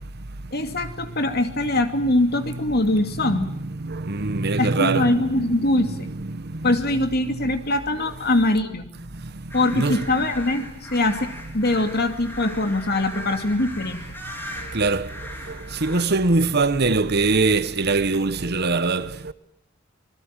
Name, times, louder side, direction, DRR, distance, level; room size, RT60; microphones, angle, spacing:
voice 1, 0.5-3.5 4.6-6.1 6.6-8.8 9.5-14.0, left 2 dB, 45° left, 2.6 m, -22 dB
voice 2, 3.2-6.7 6.9-7.0 9.7-10.1 14.7-15.1 15.8-19.3, right 3 dB, 50° right, 1.1 m, -23 dB
sound 1, 9.5-16.0, equal, 10° left, 4.1 m, -38 dB
26.0 x 21.0 x 9.1 m
head